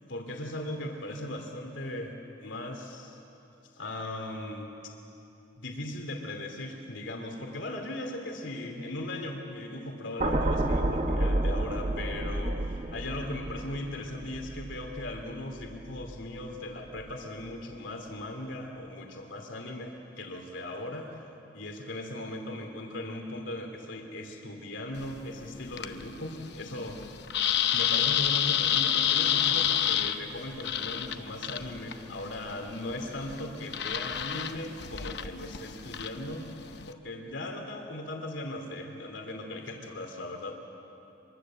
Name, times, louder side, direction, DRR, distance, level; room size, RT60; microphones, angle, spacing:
voice 1, 0.1-2.1 2.4-3.2 3.7-4.7 5.6-21.2 21.5-27.0 27.7-36.5 37.0-40.6, left 1 dB, 80° left, 2 dB, 2.7 m, -38 dB
sound 1, 10.2-16.5 16.9-17.1, right 1 dB, 35° right, 1.1 m, -31 dB
sound 2, 24.9-36.9, left 10 dB, 60° left, 0.8 m, -30 dB
25.5 x 23.5 x 7.5 m, 2.9 s
head